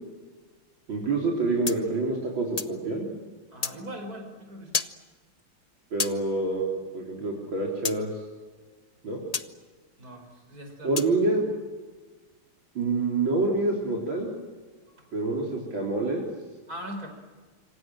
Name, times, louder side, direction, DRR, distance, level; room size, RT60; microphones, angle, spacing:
voice 1, 0.9-3.1 5.9-8.1 9.0-9.2 10.8-11.4 12.7-14.3 15.1-16.2, right 3 dB, 65° right, -1 dB, 4.4 m, -27 dB
sound 1, 1.7-2.8 3.6-3.8 4.7-5.0 6.0-6.2 7.8-8.0 9.3-9.5 11.0-11.2, left 4 dB, 75° left, 0.3 m, -30 dB
voice 2, 3.5-4.8 10.0-11.1 15.0-15.1 16.7-17.1, equal, 40° right, 4 dB, 5.8 m, -40 dB
26.5 x 26.0 x 7.7 m, 1.4 s
omnidirectional pair, 2.4 m